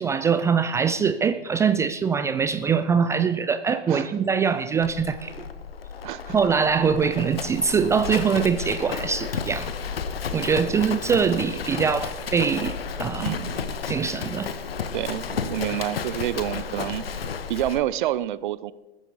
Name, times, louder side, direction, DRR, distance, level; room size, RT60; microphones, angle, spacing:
voice 1, 0.0-5.3 6.3-9.7 10.3-13.4 13.9-14.5, right 6 dB, 10° right, 11 dB, 0.3 m, -23 dB
Livestock farm animals working animals, 4.8-17.8, left 6 dB, 70° left, 1.1 m, -32 dB
voice 2, 6.0-6.4 10.4-10.5 13.2-13.6 14.9-17.1 17.5-18.7, right 13 dB, 55° right, 18 dB, 0.7 m, -28 dB
20.5 x 9.9 x 3.9 m, 1.1 s
figure-of-eight pair, 95°, 31 cm